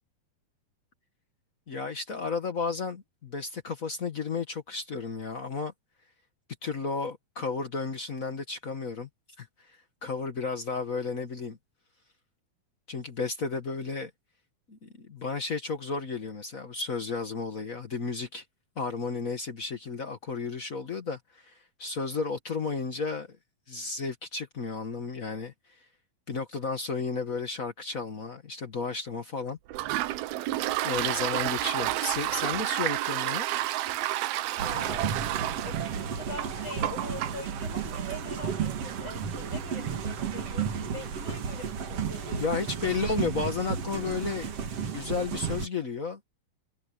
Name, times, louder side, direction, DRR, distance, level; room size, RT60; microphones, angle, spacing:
voice 1, 1.7-5.7 6.6-9.1 9.4-9.5 10.0-11.6 12.9-14.1 14.7-18.4 18.8-23.3 23.7-25.5 26.3-29.6 30.0-30.1 30.8-33.5 42.4-44.5 44.8-46.2, left 4 dB, 75° left, 0.7 m, -33 dB
Toilet flush, 29.7-43.1, right 15 dB, 85° right, 2.8 m, -33 dB
voice 2, 34.6-35.2 35.6-42.8, left 3 dB, 40° left, 8.5 m, -43 dB
sound 1, 34.6-45.7, right 7 dB, 50° right, 2.5 m, -33 dB
omnidirectional pair, 4.3 m